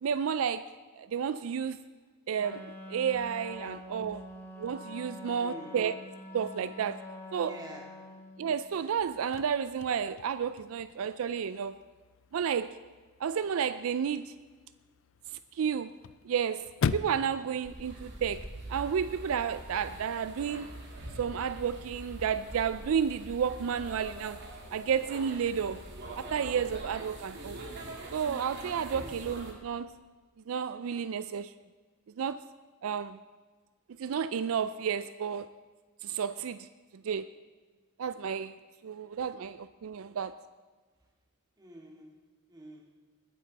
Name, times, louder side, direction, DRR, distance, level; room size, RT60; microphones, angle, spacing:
voice 1, 0.0-0.7 0.9-1.8 2.3-4.2 4.6-5.9 6.3-7.0 7.3-7.6 8.4-11.7 12.3-12.8 13.2-14.3 15.5-15.9 16.3-20.7 21.2-24.4 24.7-25.8 26.2-27.6 28.1-29.9 30.5-31.5 32.2-32.4 32.8-33.2 34.0-35.5 36.0-36.7 37.0-37.3 38.0-38.5 38.8-40.3, right 7 dB, 75° right, 13 dB, 0.4 m, -31 dB
Wind instrument woodwind instrument, 2.4-8.5, left 1 dB, 10° left, 1.6 m, -45 dB
voice 2, 5.4-5.8 7.4-7.9 28.9-29.2 41.6-42.2 42.5-42.9, right 1 dB, 20° right, -1 dB, 2.2 m, -47 dB
Chirp tweet / Car / Slam, 9.0-19.0, left 6 dB, 65° left, 0.4 m, -41 dB
sound 1, 17.6-29.5, right 1 dB, 55° right, 2.4 m, -44 dB
21.0 x 9.3 x 4.1 m, 1.4 s
head